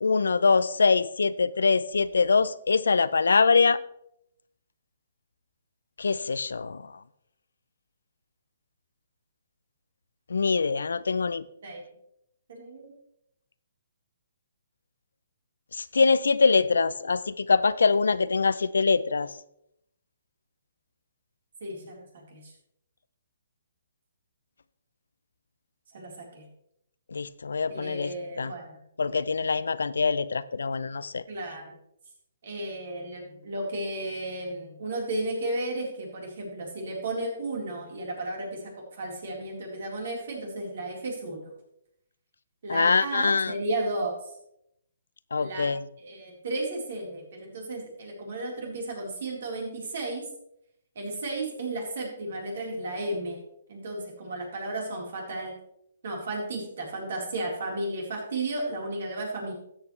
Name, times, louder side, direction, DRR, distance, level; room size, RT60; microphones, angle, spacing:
voice 1, 0.0-3.8 6.0-6.8 10.3-11.4 15.8-19.3 27.1-28.1 28.4-28.5 29.0-31.2 42.7-43.5 45.3-45.8, left 4 dB, 85° left, 17 dB, 0.5 m, -23 dB
voice 2, 12.5-12.9 21.6-22.5 25.9-26.5 27.7-28.8 31.3-31.8 32.4-41.5 42.6-44.1 45.4-45.7 46.0-50.2 51.0-53.4 53.7-55.5 56.0-59.5, right 2 dB, 60° right, -1 dB, 4.0 m, -34 dB
13.5 x 8.4 x 3.2 m, 0.76 s
hypercardioid pair, 150°, 0 cm